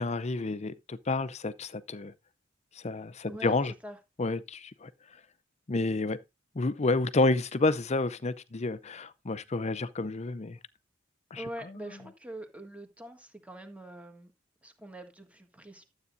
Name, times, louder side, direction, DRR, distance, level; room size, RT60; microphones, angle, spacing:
voice 1, 0.0-2.1 2.8-3.7 4.2-4.9 5.7-6.2 6.5-10.6 11.3-11.4, left 3 dB, 35° left, 0.6 m, -30 dB
voice 2, 11.4-14.3 14.6-15.8, right 1 dB, 5° right, 1.6 m, -44 dB
12.5 x 8.1 x 2.7 m
head